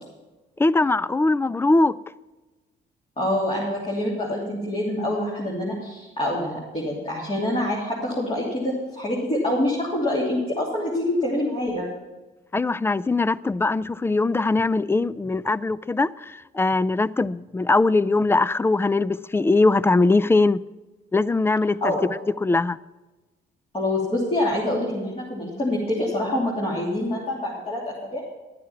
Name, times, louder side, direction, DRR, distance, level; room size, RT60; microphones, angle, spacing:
voice 1, 0.6-2.0 12.5-20.6 21.1-21.9 22.4-22.8, left 3 dB, 10° left, 0.3 m, -21 dB
voice 2, 3.2-11.9 21.8-22.0 23.7-28.3, left 1 dB, 30° left, 3.1 m, -26 dB
12.0 x 9.5 x 5.9 m
cardioid pair, 90°, 20 cm